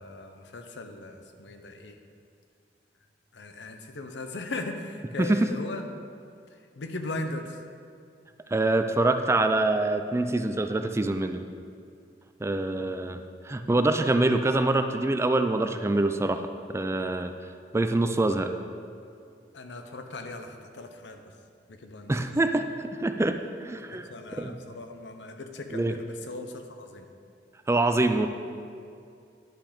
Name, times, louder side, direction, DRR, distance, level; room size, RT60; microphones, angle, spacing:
voice 1, 0.0-2.0 3.3-5.9 6.8-7.6 19.5-21.2 21.7-22.2 23.9-27.1, left 2 dB, 80° left, 6 dB, 0.8 m, -38 dB
voice 2, 5.2-5.5 8.5-11.4 12.4-17.3 17.7-18.5 22.1-22.6 23.0-24.6 25.7-25.9 27.7-28.3, right 2 dB, 15° right, 8 dB, 0.4 m, -25 dB
10.5 x 6.0 x 5.0 m, 2.4 s
head